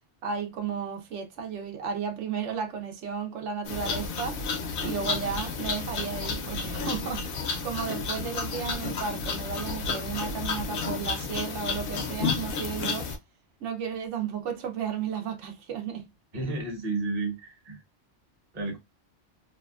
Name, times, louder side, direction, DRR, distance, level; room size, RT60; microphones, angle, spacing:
voice 1, 0.2-4.4 4.8-13.1 13.6-16.0, right 7 dB, 90° right, 1.0 m, -33 dB
sound 1, 3.7-13.2, left 4 dB, 60° left, 0.7 m, -31 dB
voice 2, 16.3-17.8 18.5-18.8, right 3 dB, 35° right, 0.9 m, -31 dB
2.6 x 2.3 x 2.3 m
omnidirectional pair, 1.2 m